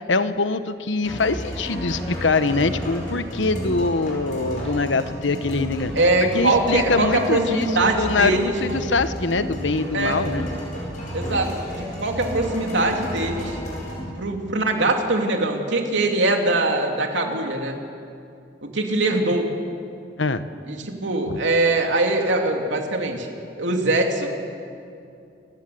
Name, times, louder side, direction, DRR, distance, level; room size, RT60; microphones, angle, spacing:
voice 1, 0.1-5.9 6.2-10.5 14.0-14.1 20.2-20.4 21.3-21.4, left 3 dB, 90° left, 11 dB, 1.0 m, -23 dB
sound 1, 1.0-14.0, equal, 45° left, 7.4 m, -32 dB
voice 2, 5.9-8.9 9.9-10.2 11.1-13.6 14.2-17.8 18.6-19.5 20.7-24.3, right 2 dB, 85° right, 2 dB, 2.9 m, -22 dB
29.0 x 16.5 x 7.9 m, 2.5 s
head